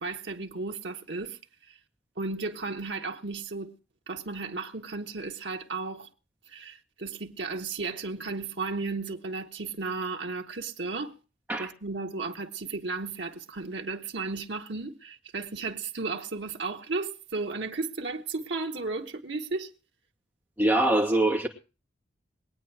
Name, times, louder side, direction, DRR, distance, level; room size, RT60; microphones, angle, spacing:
voice 1, 0.0-1.8 2.2-3.7 4.1-6.1 6.5-11.2 11.6-19.7, right 3 dB, 75° right, 1.4 m, -34 dB
voice 2, 20.6-21.5, right 1 dB, 10° right, 2.5 m, -23 dB
22.0 x 9.0 x 4.7 m
head